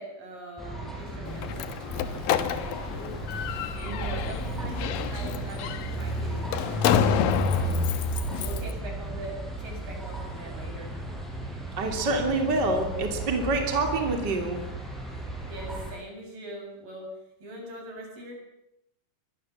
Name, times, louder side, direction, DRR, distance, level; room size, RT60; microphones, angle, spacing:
voice 1, 0.0-3.1 3.7-7.1 7.4-7.8 8.4-11.0 15.4-17.1 17.4-18.4, right 1 dB, 75° right, 1 dB, 9.3 m, -42 dB
sound 1, 0.6-15.9, equal, ahead, 6.8 m, -33 dB
Slam, 1.3-8.7, left 9 dB, 80° left, 2.9 m, -30 dB
voice 2, 3.8-4.2 11.8-14.6, right 2 dB, 30° right, 3 dB, 3.3 m, -27 dB
24.5 x 22.0 x 7.4 m, 0.82 s
omnidirectional pair, 3.9 m